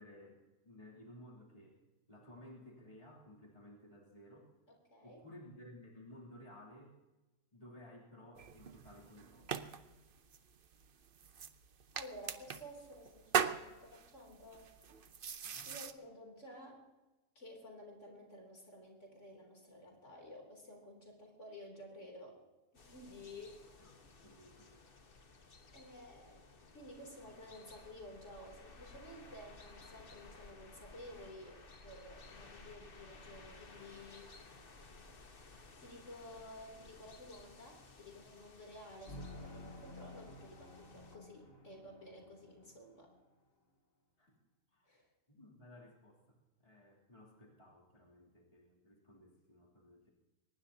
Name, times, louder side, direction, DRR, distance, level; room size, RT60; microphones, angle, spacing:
voice 1, 0.0-1.8 2.1-4.5 5.0-7.0 7.5-9.6 15.4-15.7 23.8-24.8 44.2-44.3 44.7-44.9 45.3-46.4 46.6-50.1, left 1 dB, 25° left, -3 dB, 3.2 m, -57 dB
voice 2, 4.7-5.3 11.9-14.7 15.7-16.8 17.4-22.4 22.7-23.7 25.7-26.4 26.7-34.3 35.8-43.1 44.9-45.1, left 1 dB, 60° left, 0 dB, 3.6 m, -53 dB
sound 1, 8.3-15.9, right 7 dB, 50° right, 0.8 m, -41 dB
sound 2, 22.7-41.2, left 3 dB, 45° left, 1.4 m, -57 dB
sound 3, 39.1-43.1, left 1 dB, 80° left, 2.9 m, -52 dB
22.5 x 20.0 x 2.8 m, 1.1 s
omnidirectional pair, 1.4 m